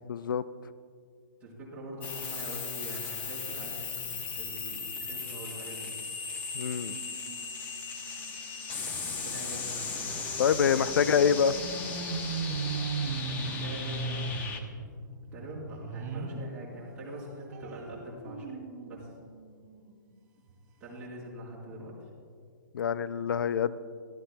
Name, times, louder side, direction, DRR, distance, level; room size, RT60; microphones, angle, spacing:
voice 1, 0.1-0.4 6.5-7.0 10.4-11.5 22.7-23.8, left 7 dB, 90° left, 15 dB, 0.4 m, -26 dB
voice 2, 1.4-6.0 8.8-10.3 10.6-10.7 13.3-14.6 15.3-18.5 18.9-19.1 20.8-22.1, right 1 dB, 10° right, -7 dB, 3.9 m, -43 dB
sound 1, 2.0-14.6, left 5 dB, 15° left, 0.8 m, -37 dB
sound 2, 6.9-16.5 16.9-20.0 20.5-20.6 20.8-20.9, right 4 dB, 50° right, 2.5 m, -39 dB
23.5 x 13.0 x 2.2 m, 2.2 s
hypercardioid pair, 165°, 11 cm